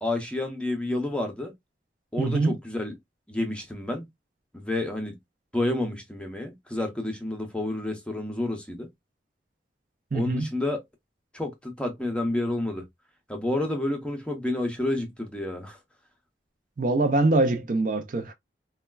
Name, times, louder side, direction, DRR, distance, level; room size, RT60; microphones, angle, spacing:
voice 1, 0.0-1.5 2.1-2.9 3.3-4.1 4.5-5.2 5.5-8.9 10.1-10.8 11.3-12.9 13.3-15.8, left 1 dB, 5° left, 0.6 m, -29 dB
voice 2, 2.2-2.6 10.1-10.5 16.8-18.3, right 2 dB, 45° right, 0.5 m, -23 dB
4.2 x 2.2 x 2.3 m
head